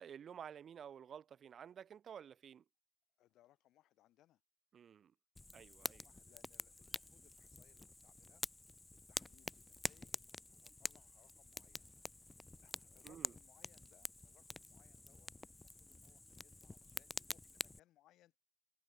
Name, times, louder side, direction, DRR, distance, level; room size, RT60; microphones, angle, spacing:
voice 1, 0.0-2.6 4.7-5.1 5.5-6.0 13.0-13.3, right 8 dB, 55° right, 6.5 m, -52 dB
voice 2, 3.2-4.4 5.9-8.4 9.1-11.8 12.6-18.4, left 14 dB, 85° left, 7.0 m, -71 dB
Fire, 5.3-17.8, left 2 dB, 20° left, 2.0 m, -48 dB
cardioid pair, 90°, 0 cm